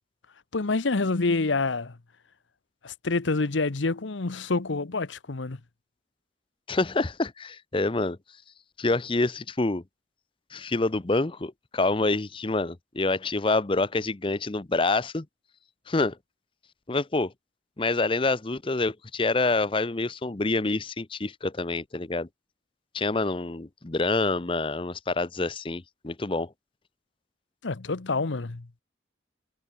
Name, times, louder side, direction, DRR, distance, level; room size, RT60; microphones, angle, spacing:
voice 1, 0.5-2.0 2.8-5.6 27.6-28.7, left 3 dB, 85° left, 1.0 m, -27 dB
voice 2, 6.7-8.2 8.8-9.8 10.5-15.3 15.9-16.2 16.9-17.3 17.8-22.3 22.9-26.5, left 3 dB, 30° left, 0.7 m, -27 dB
head